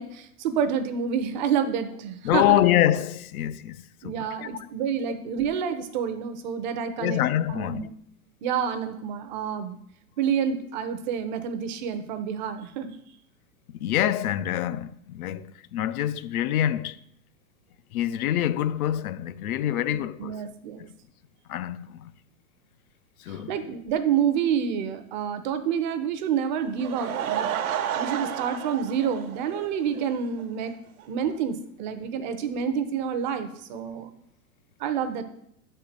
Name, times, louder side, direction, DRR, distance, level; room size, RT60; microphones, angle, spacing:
voice 1, 0.0-2.6 4.0-7.2 7.5-7.9 8.4-9.8 10.2-13.0 19.9-20.9 23.3-30.7 31.1-34.1 34.8-35.2, right 7 dB, 35° right, 0.5 m, -28 dB
voice 2, 2.2-4.5 7.0-7.8 13.7-17.0 17.9-20.4 21.5-22.1 23.2-23.6, left 12 dB, 75° left, 0.5 m, -26 dB
Laughter / Crowd, 26.6-30.1 30.4-30.5 31.0-31.1 31.3-31.4, right 9 dB, 70° right, 0.9 m, -31 dB
6.1 x 4.4 x 6.5 m
supercardioid pair, 150°, 43 cm